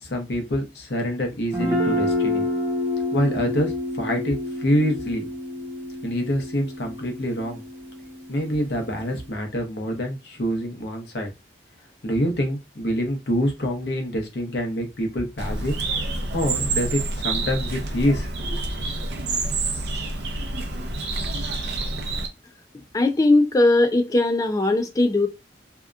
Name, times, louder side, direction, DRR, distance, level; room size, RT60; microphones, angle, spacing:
voice 1, 0.0-2.5 3.1-5.3 6.0-7.6 8.3-11.3 12.0-15.8 16.3-18.6, equal, 70° left, 0.8 m, -26 dB
Guitar, 1.5-9.2, left 1 dB, 15° right, 0.7 m, -28 dB
Bird, 15.4-22.3, right 3 dB, 70° right, 0.5 m, -28 dB
voice 2, 22.9-25.3, left 2 dB, 20° left, 0.4 m, -19 dB
2.7 x 2.2 x 2.4 m
head